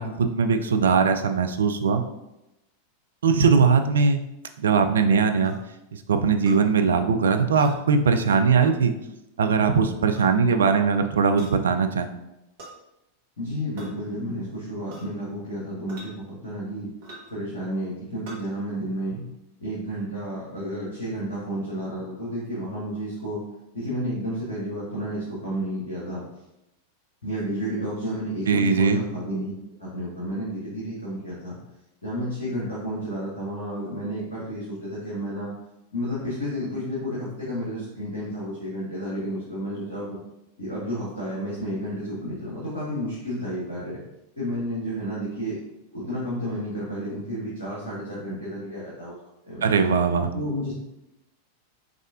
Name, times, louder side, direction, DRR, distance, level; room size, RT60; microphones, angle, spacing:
voice 1, 0.0-2.0 3.2-4.2 4.6-5.6 5.9-8.9 9.4-12.1 28.5-29.0 49.6-50.3, right 5 dB, 65° right, 7 dB, 0.3 m, -20 dB
sound 1, 5.4-5.6 6.5-6.6 7.6-7.8 8.6-8.7 10.0-10.3 11.4-11.6 12.6-12.8 13.8-13.9 14.9-15.2 15.9-16.1 17.0-17.4 18.3-18.4, right 1 dB, 50° right, 1.2 m, -43 dB
voice 2, 13.4-16.9 17.3-19.2 19.6-23.4 23.7-26.2 27.2-29.5 29.8-31.6 32.0-35.5 35.9-40.2 40.6-44.0 44.4-45.6 45.9-49.2 49.4-49.7 50.3-50.7, equal, 80° left, -8 dB, 1.3 m, -31 dB
4.9 x 3.1 x 2.4 m, 0.90 s
figure-of-eight pair, 90°, 0 cm